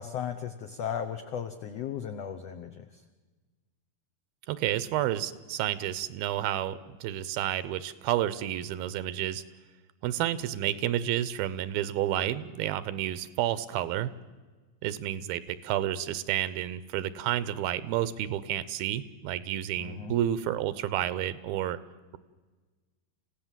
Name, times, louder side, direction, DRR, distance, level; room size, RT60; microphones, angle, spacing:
voice 1, 0.0-3.0 19.8-20.1, left 8 dB, 85° left, 8 dB, 1.4 m, -36 dB
voice 2, 4.5-9.4 10.0-14.1 14.8-21.8, right 12 dB, 85° right, 16 dB, 2.6 m, -30 dB
27.5 x 16.0 x 7.4 m, 1.3 s
omnidirectional pair, 4.2 m